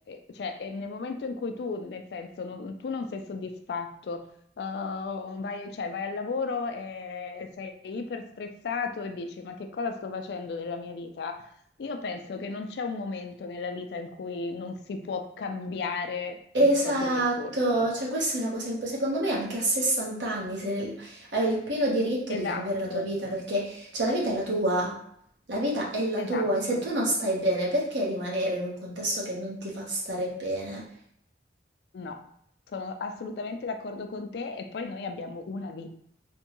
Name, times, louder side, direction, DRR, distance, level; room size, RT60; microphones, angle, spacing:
voice 1, 0.1-4.2 4.6-11.4 11.8-17.9 22.3-23.1 26.2-26.8 31.9-32.2 32.7-35.9, left 4 dB, 65° left, 6 dB, 0.3 m, -35 dB
voice 2, 16.5-24.9 25.5-30.8, right 1 dB, 85° right, -4 dB, 0.9 m, -27 dB
3.4 x 2.2 x 2.9 m, 0.68 s
head